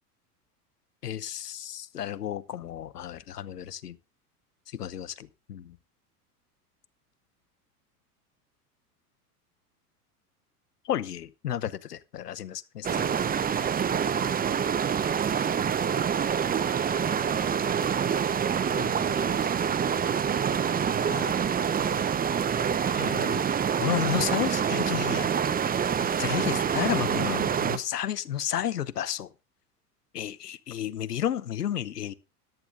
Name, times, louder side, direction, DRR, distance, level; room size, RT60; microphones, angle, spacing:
voice 1, 1.0-4.0 4.7-5.8 10.8-13.1 18.8-18.9 21.1-21.4 22.9-23.4 23.8-25.3 26.0-29.3 30.1-32.1, left 10 dB, 85° left, 0.9 m, -32 dB
sound 1, 12.8-27.8, right 7 dB, 20° right, 1.0 m, -26 dB
14.0 x 10.5 x 3.6 m
hypercardioid pair, 90°, 46 cm